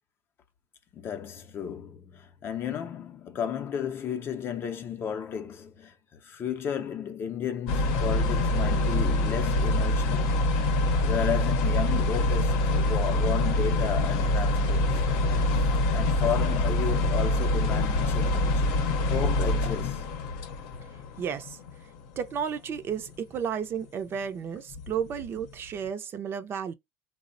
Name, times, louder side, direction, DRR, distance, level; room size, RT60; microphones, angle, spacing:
voice 1, 0.9-10.3 11.0-15.2 15.9-18.7 19.1-20.1, left 8 dB, 40° left, 0.5 m, -33 dB
sound 1, 7.7-21.8 22.0-22.3 22.9-23.1 24.1-24.2 24.7-25.5 25.8-25.9, left 2 dB, 80° left, 0.7 m, -25 dB
voice 2, 21.2-21.6 22.2-26.7, right 7 dB, 40° right, 0.4 m, -32 dB
3.3 x 2.0 x 2.5 m
supercardioid pair, 120°, 6 cm